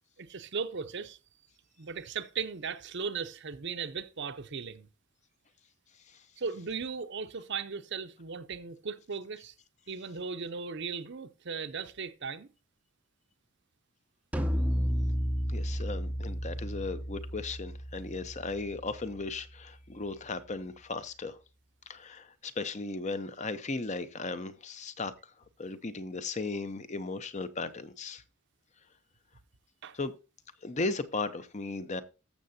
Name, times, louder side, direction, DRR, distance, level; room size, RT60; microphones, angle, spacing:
voice 1, 0.2-1.2 1.8-4.9 6.4-9.5 9.9-12.5 29.8-30.0, right 5 dB, 50° right, 0.7 m, -37 dB
sound 1, 14.3-19.7, equal, 5° right, 0.6 m, -33 dB
voice 2, 15.5-21.4 21.9-25.1 25.6-28.2 29.9-30.1 30.6-32.0, left 3 dB, 30° left, 0.7 m, -36 dB
14.5 x 6.6 x 2.7 m
head